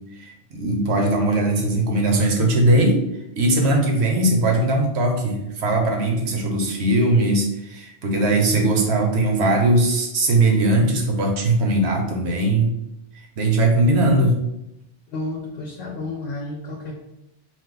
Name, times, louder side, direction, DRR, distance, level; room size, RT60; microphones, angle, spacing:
voice 1, 0.1-3.0 3.3-12.7 13.4-14.4, right 2 dB, 70° right, 2 dB, 1.0 m, -19 dB
voice 2, 15.1-17.0, left 2 dB, 70° left, -1 dB, 0.8 m, -31 dB
4.5 x 2.2 x 3.8 m, 0.84 s
omnidirectional pair, 1.2 m